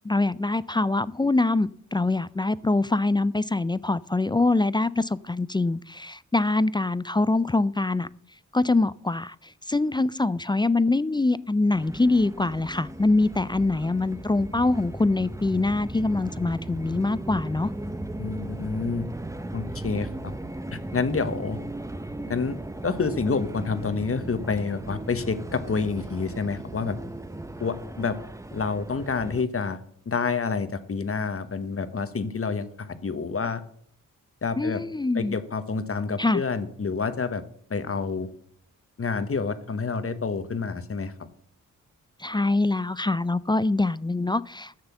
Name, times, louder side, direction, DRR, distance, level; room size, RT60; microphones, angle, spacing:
voice 1, 0.0-8.1 8.5-17.7 34.6-35.4 36.2-36.4 42.2-44.7, left 2 dB, 15° left, 18 dB, 0.3 m, -24 dB
sound 1, 11.7-29.4, right 1 dB, 10° right, 0.7 m, -37 dB
voice 2, 18.2-19.1 19.5-20.3 20.7-21.6 22.3-27.0 27.6-28.2 28.5-29.8 30.1-33.6 34.4-34.8 35.1-37.4 37.7-38.3 39.0-41.1, left 4 dB, 45° left, 11 dB, 1.1 m, -28 dB
10.0 x 6.7 x 7.0 m, 0.63 s
cardioid pair, 65°, 33 cm